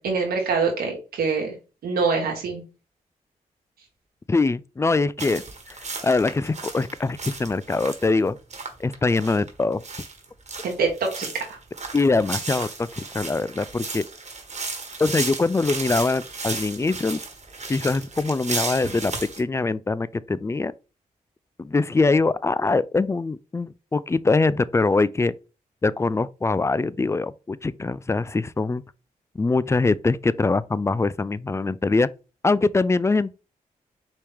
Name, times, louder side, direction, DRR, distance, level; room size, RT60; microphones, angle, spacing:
voice 1, 0.0-1.5 1.8-2.6 10.6-11.6, right 4 dB, 90° right, 1.3 m, -25 dB
voice 2, 4.3-5.8 6.0-8.4 8.8-9.8 11.9-14.0 15.0-17.2 17.7-19.1 19.4-20.7 21.6-25.3 25.8-28.8 29.4-32.1 32.4-33.3, left 3 dB, 20° left, 0.3 m, -23 dB
sound 1, 5.2-19.4, right 4 dB, 50° right, 1.4 m, -34 dB
4.5 x 3.1 x 3.5 m
supercardioid pair, 45°, 15 cm